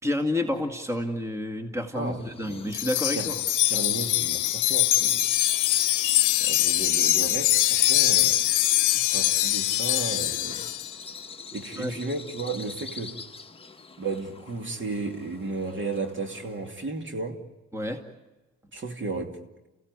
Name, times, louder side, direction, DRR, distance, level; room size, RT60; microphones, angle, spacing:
voice 1, 0.0-3.4 11.8-11.9 17.7-18.0, left 1 dB, 10° right, 2.2 m, -29 dB
voice 2, 1.9-2.6 3.1-3.3 3.7-5.3 6.4-8.5 9.1-10.7 11.5-13.2 14.0-17.4 18.7-19.4, right 3 dB, 40° right, 2.6 m, -34 dB
Bird vocalization bird call bird song, 2.0-16.8, left 4 dB, 20° left, 1.1 m, -45 dB
Wind chime, 2.7-10.9, left 15 dB, 85° left, 0.8 m, -23 dB
28.5 x 16.5 x 9.7 m
cardioid pair, 90°, 30 cm